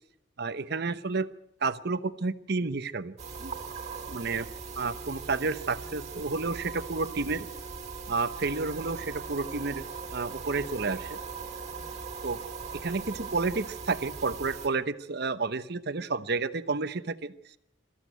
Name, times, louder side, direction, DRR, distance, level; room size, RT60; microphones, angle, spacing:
voice 1, 0.4-1.3 1.6-3.1 3.4-3.5 4.1-4.5 4.8-7.5 8.1-9.8 10.1-11.2 12.2-12.4 12.8-17.6, right 3 dB, 55° right, 12 dB, 1.0 m, -31 dB
sound 1, 3.2-14.7, right 5 dB, 35° right, 2.7 m, -40 dB
22.5 x 14.0 x 9.3 m, 0.79 s
head